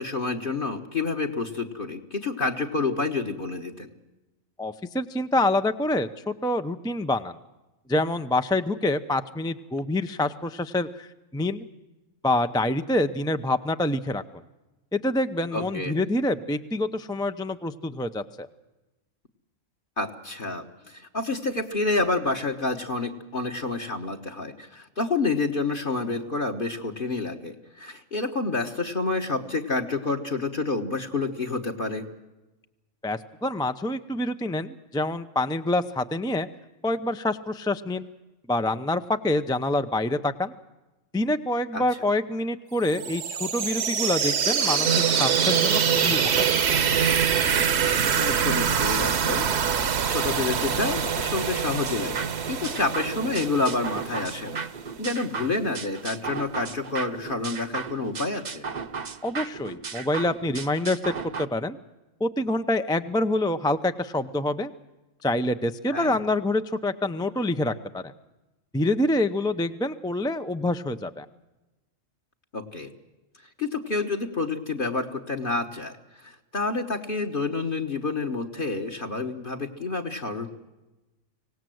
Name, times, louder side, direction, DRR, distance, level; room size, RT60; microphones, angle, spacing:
voice 1, 0.0-3.9 15.5-15.9 20.0-32.1 41.7-41.8 48.2-54.6 55.0-58.7 65.9-66.2 72.5-72.9 73.6-80.5, left 3 dB, 40° left, 7 dB, 1.4 m, -29 dB
voice 2, 4.6-7.4 7.9-11.7 12.2-14.2 14.9-18.5 33.0-36.5 36.8-38.1 38.5-40.5 41.1-46.5 59.2-61.1 61.4-61.8 62.2-64.7 65.2-68.1 68.7-71.3, left 1 dB, 5° left, 9 dB, 0.4 m, -26 dB
sound 1, 42.8-54.5, right 7 dB, 55° right, 1.1 m, -25 dB
sound 2, 44.8-54.7, right 9 dB, 70° right, 1.5 m, -31 dB
sound 3, 51.9-61.5, right 5 dB, 40° right, 0.8 m, -36 dB
25.0 x 18.0 x 7.8 m, 1.1 s
omnidirectional pair, 1.4 m